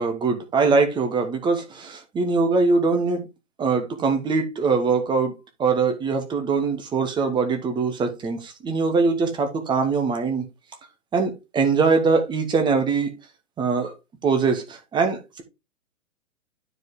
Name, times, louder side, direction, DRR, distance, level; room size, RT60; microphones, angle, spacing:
voice 1, 0.0-3.3 3.6-5.3 5.6-10.4 11.1-13.1 13.6-13.9 14.2-15.4, right 4 dB, 10° right, 1.3 m, -22 dB
9.4 x 4.9 x 3.6 m
figure-of-eight pair, 115°, 40 cm